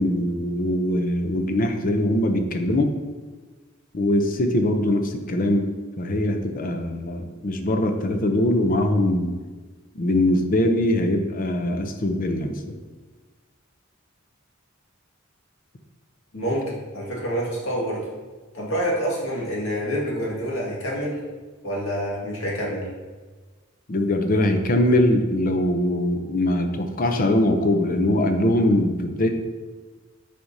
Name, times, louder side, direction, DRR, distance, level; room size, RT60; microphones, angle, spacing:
voice 1, 0.0-2.9 3.9-9.3 9.9-12.8 23.9-29.3, left 1 dB, 45° left, 6 dB, 0.6 m, -22 dB
voice 2, 16.3-18.1 18.5-21.2 21.6-22.9, equal, 80° left, -4 dB, 1.9 m, -27 dB
7.6 x 5.0 x 2.7 m, 1.4 s
head